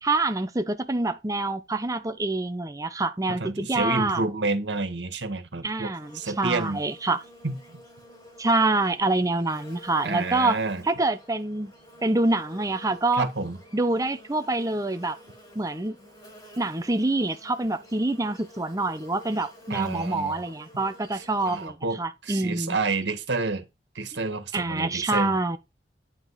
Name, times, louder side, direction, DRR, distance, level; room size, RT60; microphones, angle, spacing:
voice 1, 0.0-4.2 5.6-7.2 8.4-10.6 10.8-11.7 12.0-13.2 13.7-15.2 15.5-16.0 16.6-22.8 24.5-25.6, right 2 dB, 20° right, 0.8 m, -26 dB
voice 2, 3.3-6.8 7.4-7.8 10.0-10.8 13.1-13.6 19.7-20.5 21.1-23.6 23.9-25.3, right 3 dB, 85° right, 1.7 m, -29 dB
Buzz, 6.0-21.7, equal, 25° left, 4.8 m, -50 dB
9.2 x 5.3 x 4.1 m
head